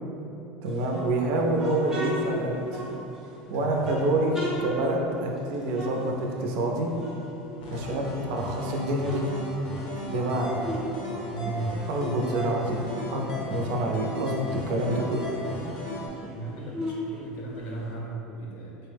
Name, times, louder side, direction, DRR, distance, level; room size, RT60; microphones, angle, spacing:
voice 1, 0.6-2.8 3.5-6.9 7.7-9.2 10.1-10.6 11.9-12.8 13.1-15.2, right 1 dB, 60° right, 1 dB, 0.4 m, -27 dB
sound 1, 0.7-3.3 3.8-6.7 6.9-8.3 8.7-10.9 11.2-13.8 14.2-14.3 14.5-17.9, equal, 10° right, 0.5 m, -37 dB
voice 2, 3.5-4.0 10.1-10.6 11.3-11.8 16.3-18.8, right 2 dB, 50° left, -2 dB, 0.6 m, -36 dB
sound 2, 7.6-16.1, equal, 90° left, 0.8 m, -35 dB
3.9 x 2.0 x 3.3 m, 2.9 s
cardioid pair, 155°, 4 cm